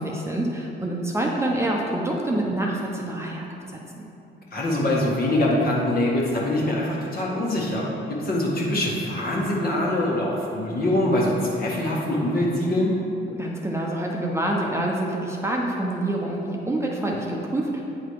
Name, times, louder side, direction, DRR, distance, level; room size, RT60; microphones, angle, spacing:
voice 1, 0.0-4.0 13.3-17.8, right 1 dB, 15° right, -2 dB, 0.8 m, -27 dB
voice 2, 4.5-12.9, left 1 dB, 50° left, -4 dB, 1.7 m, -24 dB
8.8 x 4.0 x 4.7 m, 2.8 s
cardioid pair, 90°, 20 cm